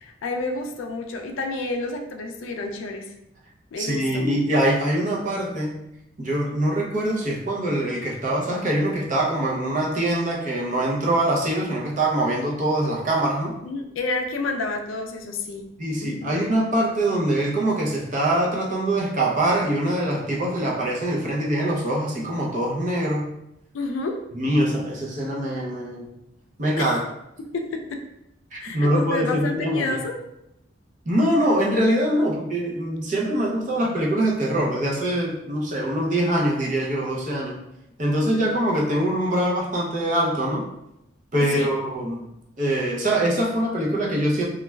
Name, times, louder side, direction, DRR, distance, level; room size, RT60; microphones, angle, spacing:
voice 1, 0.0-3.0 3.7-4.3 13.6-15.7 16.0-16.3 23.7-24.1 26.8-26.9 27.5-28.0 28.6-30.2 32.2-32.3 38.2-38.4 41.4-41.7, left 3 dB, 80° left, 4 dB, 0.4 m, -30 dB
voice 2, 3.8-5.8 6.2-13.6 15.8-23.3 24.3-26.1 26.6-27.0 28.5-30.0 31.1-37.6 38.0-40.7 41.3-42.3 42.6-44.4, right 1 dB, 40° right, -3 dB, 0.5 m, -23 dB
3.1 x 2.3 x 2.2 m, 0.85 s
head